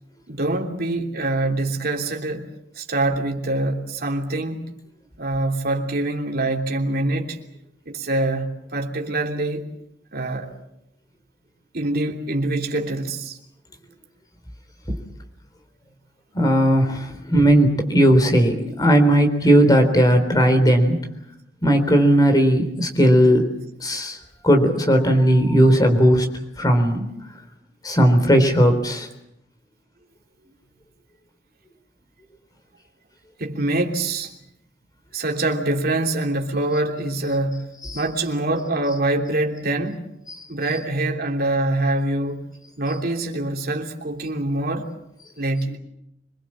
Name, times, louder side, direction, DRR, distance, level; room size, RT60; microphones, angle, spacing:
voice 1, 0.3-2.5 2.7-4.6 5.2-7.4 7.8-9.7 10.1-10.5 11.7-13.4 33.4-34.3 35.1-40.0 40.5-42.4 42.8-44.9 45.4-45.8, right 2 dB, 55° right, 2 dB, 3.2 m, -24 dB
voice 2, 16.3-21.0 21.6-23.4 23.8-24.2 24.4-26.3 26.6-27.0 27.8-29.1 37.9-38.0 40.3-40.4, equal, 20° left, 5 dB, 3.8 m, -17 dB
25.5 x 22.5 x 7.5 m, 0.82 s
head